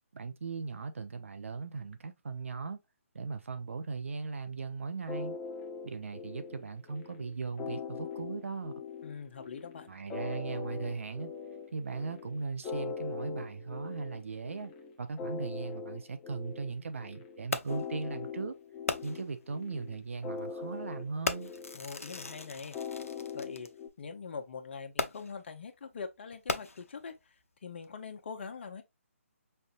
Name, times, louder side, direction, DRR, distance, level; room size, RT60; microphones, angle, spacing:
voice 1, 0.1-2.8 3.1-5.4 5.8-8.7 9.9-11.3 11.7-14.7 15.0-18.5 19.0-21.5, right 4 dB, 65° right, 0.8 m, -38 dB
sound 1, 5.1-23.9, left 5 dB, 15° left, 0.5 m, -42 dB
voice 2, 9.0-9.9 21.7-22.8 23.3-23.7 24.0-28.8, left 5 dB, 50° left, 0.8 m, -43 dB
Fireworks, 17.5-17.9 18.9-19.4 20.3-20.4 21.2-23.7 25.0-25.5 26.3-27.1 27.8-27.9, left 3 dB, 80° left, 0.5 m, -37 dB
5.5 x 2.6 x 2.4 m
figure-of-eight pair, 145°, 8 cm